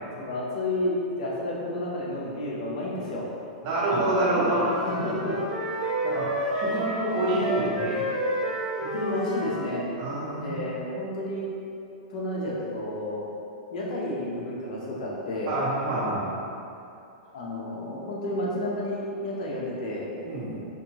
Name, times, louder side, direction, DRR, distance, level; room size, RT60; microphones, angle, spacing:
voice 1, 0.2-3.3 4.7-5.4 8.8-9.9 10.4-11.5 12.1-13.3 13.7-15.5 17.3-20.1, left 1 dB, 65° left, -4 dB, 0.9 m, -31 dB
voice 2, 3.6-4.7 6.0-6.3 6.5-8.0 10.0-10.6 15.5-16.4 20.2-20.6, right 2 dB, 40° right, -7 dB, 1.1 m, -27 dB
sound 1, 4.5-9.7, equal, 10° right, 0.7 m, -30 dB
4.3 x 2.6 x 2.9 m, 2.6 s
supercardioid pair, 150°, 4 cm